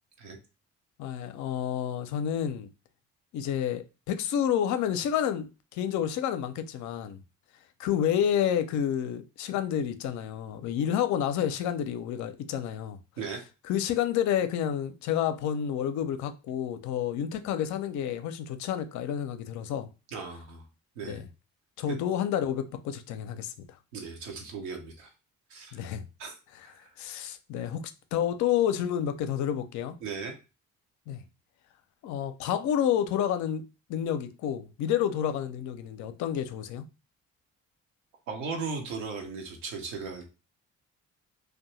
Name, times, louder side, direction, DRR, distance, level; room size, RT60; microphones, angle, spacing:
voice 1, 1.0-2.7 3.3-7.2 7.8-13.0 13.7-19.9 21.1-21.2 21.8-23.7 25.7-26.1 26.5-27.8 28.1-30.0 31.1-31.2 32.0-33.6 33.9-36.8, left 9 dB, 50° left, 0.5 m, -29 dB
voice 2, 20.1-20.6 21.0-21.2 21.9-22.0 23.9-25.1 25.5-25.8 26.2-26.3 26.6-26.9 30.0-30.3 38.3-40.2, right 4 dB, 75° right, 0.7 m, -37 dB
2.6 x 2.1 x 2.9 m
figure-of-eight pair, 40°, 39 cm